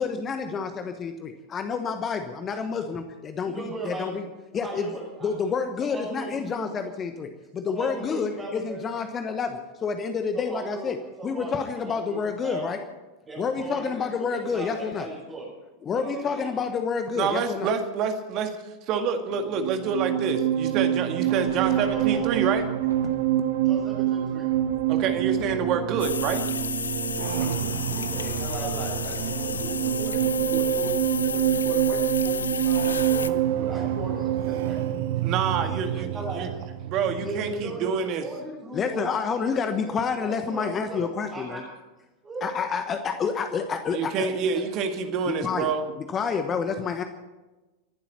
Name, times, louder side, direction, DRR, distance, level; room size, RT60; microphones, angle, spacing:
voice 1, 0.0-4.2 4.5-12.8 13.4-15.1 15.8-17.7 27.5-27.6 35.9-36.0 38.7-41.6 42.4-44.3 45.2-45.7 46.0-47.0, left 5 dB, 25° left, 8 dB, 1.2 m, -29 dB
voice 2, 3.4-4.2 4.5-5.3 5.8-6.8 7.7-8.8 10.3-10.9 11.2-11.5 11.8-12.2 12.4-12.6 13.3-14.1 14.3-15.4 15.9-16.5 21.4-22.3 23.6-24.5 27.1-34.8 35.6-36.5 37.2-39.0 39.6-39.9 40.2-41.0 41.3-41.6 42.2-42.5 44.5-44.6, right 2 dB, 20° right, -6 dB, 6.7 m, -37 dB
voice 3, 17.2-18.6 18.9-22.6 24.9-26.4 35.2-36.5 36.8-38.3 43.9-45.8, right 6 dB, 40° right, 6 dB, 1.9 m, -27 dB
sound 1, 19.3-37.8, right 11 dB, 55° right, 0.9 m, -26 dB
sound 2, 21.4-29.5, right 2 dB, 75° right, 2.9 m, -46 dB
sound 3, 26.0-33.3, left 6 dB, 70° left, 0.6 m, -32 dB
28.5 x 11.5 x 4.4 m, 1.1 s
figure-of-eight pair, 90°, 0 cm